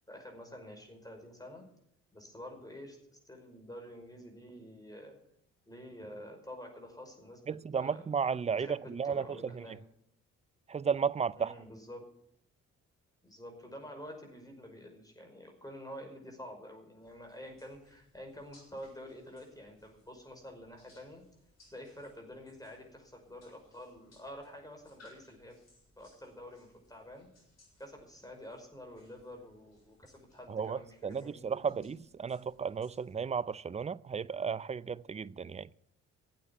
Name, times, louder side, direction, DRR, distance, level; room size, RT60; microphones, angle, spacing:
voice 1, 0.1-1.7 2.1-3.0 3.3-5.2 5.7-8.0 8.6-9.8 11.3-12.1 13.2-21.2 21.7-25.6 26.0-27.3 27.8-31.9, equal, 10° left, 5.4 m, -48 dB
voice 2, 7.5-9.7 10.7-11.5 30.5-35.7, right 6 dB, 20° right, 0.5 m, -34 dB
sound 1, 17.0-33.1, left 2 dB, 50° left, 7.3 m, -66 dB
13.5 x 8.5 x 8.6 m
hypercardioid pair, 50°, 33 cm